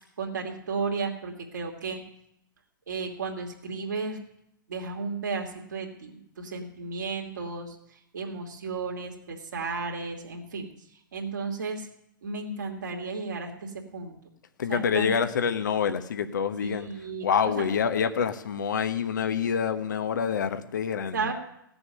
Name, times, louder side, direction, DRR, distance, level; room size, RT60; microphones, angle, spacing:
voice 1, 0.2-2.0 2.9-4.2 4.7-10.7 11.1-11.9 12.2-14.2 14.7-15.1 16.6-17.7 21.1-21.3, right 4 dB, 60° right, 0 dB, 2.6 m, -34 dB
voice 2, 14.6-16.9 17.2-21.3, left 7 dB, 60° left, 9 dB, 1.1 m, -27 dB
17.0 x 6.9 x 9.5 m, 0.77 s
figure-of-eight pair, 110°, 11 cm